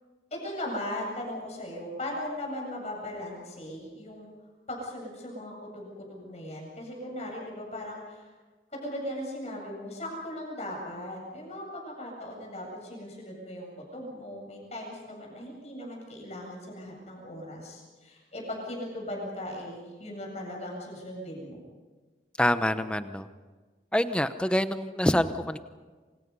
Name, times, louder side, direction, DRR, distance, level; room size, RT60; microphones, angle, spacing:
voice 1, 0.3-4.3 4.7-8.3 8.7-21.6, left 1 dB, 40° left, -1 dB, 7.9 m, -38 dB
voice 2, 22.4-23.3 23.9-25.6, left 1 dB, 5° left, 10 dB, 0.8 m, -26 dB
27.5 x 27.0 x 5.5 m, 1.4 s
head